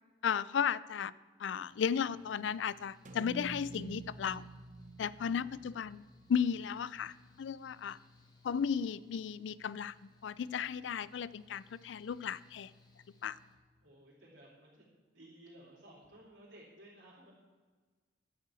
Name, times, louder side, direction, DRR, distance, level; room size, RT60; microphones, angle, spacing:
voice 1, 0.2-1.1 1.4-4.4 5.0-8.0 8.4-9.9 10.2-12.7 13.2-13.4, left 7 dB, 75° left, 19 dB, 0.4 m, -35 dB
Mechanical fan, 1.7-13.6, left 3 dB, 25° left, 1.4 m, -64 dB
sound 1, 3.1-7.3, right 2 dB, 45° right, 0.9 m, -49 dB
voice 2, 13.8-17.3, right 1 dB, 85° right, -5 dB, 3.5 m, -57 dB
11.5 x 5.6 x 8.3 m, 1.4 s
head